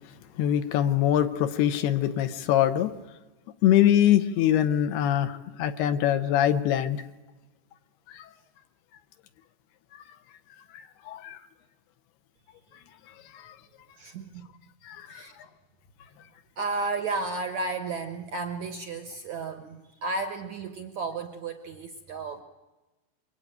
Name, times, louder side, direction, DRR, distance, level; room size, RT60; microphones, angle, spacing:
voice 1, 0.4-3.0 3.6-7.0 8.1-8.3 10.7-11.4 13.3-13.6 14.8-15.2, left 11 dB, 75° left, 2.8 m, -24 dB
voice 2, 14.0-14.5 15.1-15.4 16.6-22.4, right 3 dB, 70° right, 1.8 m, -33 dB
26.5 x 23.5 x 9.2 m
omnidirectional pair, 5.0 m